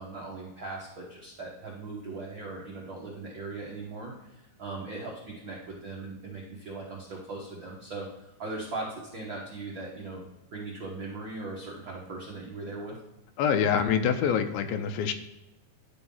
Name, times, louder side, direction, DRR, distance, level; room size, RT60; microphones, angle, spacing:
voice 1, 0.0-10.2 10.5-13.0, right 3 dB, 80° right, -3 dB, 1.0 m, -39 dB
voice 2, 13.4-15.1, left 7 dB, 80° left, 9 dB, 2.4 m, -25 dB
11.5 x 3.8 x 5.4 m, 0.92 s
omnidirectional pair, 4.2 m